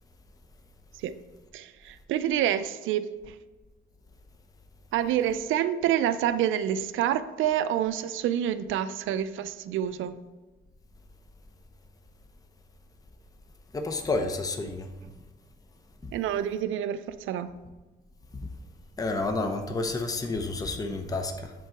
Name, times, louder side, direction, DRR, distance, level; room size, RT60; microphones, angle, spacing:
voice 1, 1.5-3.4 4.9-10.2 16.1-17.5, right 10 dB, 80° right, 0.4 m, -28 dB
voice 2, 13.7-14.9 16.0-16.1 18.3-18.5 19.0-21.5, left 3 dB, 20° left, 0.6 m, -30 dB
7.5 x 3.8 x 4.5 m
cardioid pair, 90°, 20 cm